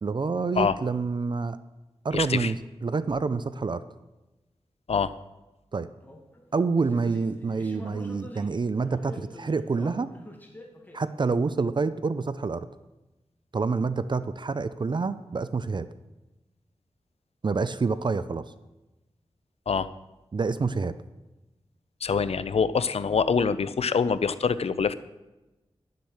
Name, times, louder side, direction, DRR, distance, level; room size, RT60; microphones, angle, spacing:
voice 1, 0.0-1.6 2.0-2.6 2.8-3.8 5.7-5.9 6.5-10.1 10.9-12.7 13.5-15.9 17.4-18.4 20.3-20.9, right 4 dB, 45° right, 13 dB, 0.5 m, -27 dB
voice 2, 2.1-2.5 4.9-5.1 19.7-19.9 22.0-24.9, left 5 dB, 70° left, 14 dB, 0.6 m, -25 dB
sound 1, 6.0-8.5 8.8-11.0, left 1 dB, 15° left, 2.0 m, -45 dB
11.5 x 7.6 x 7.1 m, 1.0 s
wide cardioid pair, 80°, 11 cm